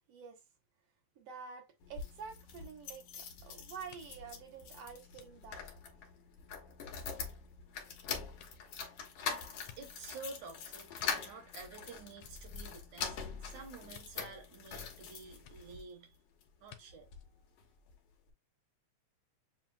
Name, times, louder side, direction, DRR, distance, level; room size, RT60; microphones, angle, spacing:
voice 1, 0.1-0.4 1.2-5.6 13.5-13.6, right 6 dB, 65° right, 1.8 m, -49 dB
sound 1, 1.8-15.8 16.4-17.3 17.6-17.7 17.9-18.0, left 6 dB, 65° left, 1.9 m, -44 dB
sound 2, 3.9-6.5 7.0-10.3 10.7-11.8 12.1-13.0 13.9-14.1 15.4-15.5 16.7-16.8 17.1-17.3, left 10 dB, 85° left, 2.0 m, -60 dB
voice 2, 9.8-16.1 16.6-17.1, right 4 dB, 85° right, 2.7 m, -50 dB
7.3 x 2.9 x 2.2 m
omnidirectional pair, 3.4 m